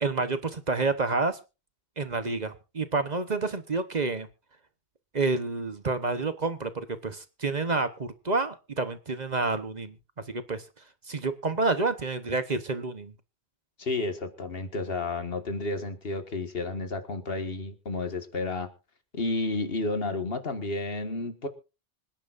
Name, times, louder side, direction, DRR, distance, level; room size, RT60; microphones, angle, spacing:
voice 1, 0.0-1.4 2.0-4.3 5.1-10.0 10.3-10.6 11.1-13.1, right 3 dB, 40° right, 11 dB, 1.1 m, -29 dB
voice 2, 13.8-18.7 19.1-21.5, left 3 dB, 60° left, 8 dB, 1.8 m, -31 dB
25.5 x 10.5 x 2.5 m, 0.30 s
omnidirectional pair, 1.1 m